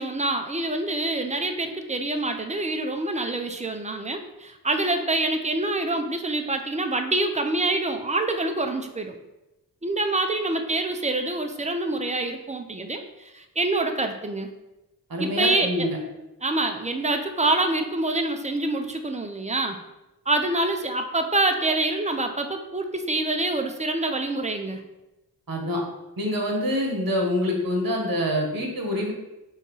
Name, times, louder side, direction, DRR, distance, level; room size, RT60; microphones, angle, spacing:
voice 1, 0.0-9.1 9.8-14.5 15.2-15.9 16.4-19.8 20.3-24.8, right 2 dB, 15° right, 5 dB, 0.7 m, -26 dB
voice 2, 15.1-16.0 25.5-25.8 26.2-29.1, left 1 dB, 60° right, 1 dB, 1.7 m, -26 dB
5.5 x 3.7 x 5.5 m, 0.98 s
wide cardioid pair, 65°, 40 cm